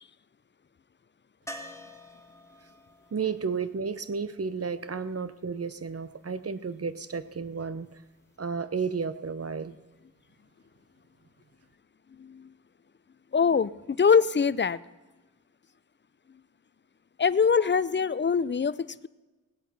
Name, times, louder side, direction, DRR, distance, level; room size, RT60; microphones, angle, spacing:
sound 1, 1.5-5.3 8.0-8.1 8.3-8.4, left 1 dB, 10° left, 1.6 m, -47 dB
voice 1, 3.1-7.9 8.4-9.8, right 5 dB, 45° right, 14 dB, 0.9 m, -32 dB
voice 2, 12.2-12.5 13.3-14.8 17.2-19.1, left 6 dB, 35° left, 17 dB, 0.6 m, -23 dB
18.5 x 8.2 x 5.9 m, 1.2 s
cardioid pair, 50°, 34 cm